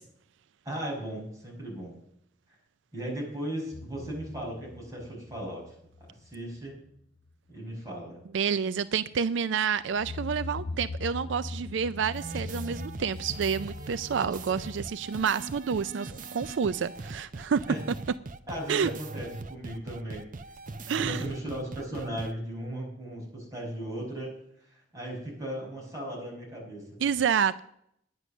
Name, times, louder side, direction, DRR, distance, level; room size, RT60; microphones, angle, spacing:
voice 1, 0.6-1.9 2.9-5.7 6.2-6.8 7.5-8.2 17.7-17.8 18.5-20.3 20.9-24.3 24.7-27.0, right 1 dB, 20° right, 5.3 m, -36 dB
sound 1, 3.7-6.3 6.6-6.9 7.2-7.3 9.8-14.9, left 3 dB, 70° left, 0.8 m, -40 dB
voice 2, 8.3-17.6 18.7-18.9 20.9-21.2 27.0-27.6, right 7 dB, 85° right, 0.4 m, -29 dB
sound 2, 12.1-22.3, right 3 dB, 45° right, 0.6 m, -41 dB
10.0 x 9.7 x 6.2 m
head